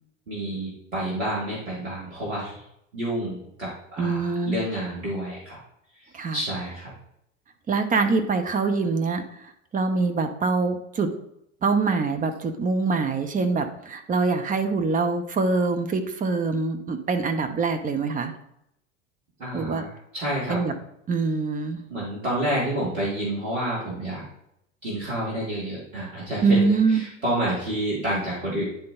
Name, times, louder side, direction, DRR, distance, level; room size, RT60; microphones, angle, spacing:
voice 1, 0.3-2.6 2.9-5.6 5.9-6.9 19.4-20.6 21.9-24.2 24.8-26.6 26.9-28.7, right 1 dB, 85° right, -8 dB, 2.3 m, -29 dB
voice 2, 4.0-4.6 6.1-6.4 7.7-11.1 11.6-18.3 19.5-19.9 20.5-20.7 21.1-21.8 26.4-27.0, right 4 dB, 20° right, 8 dB, 0.8 m, -24 dB
10.0 x 3.8 x 3.7 m, 0.77 s
figure-of-eight pair, 80°, 38 cm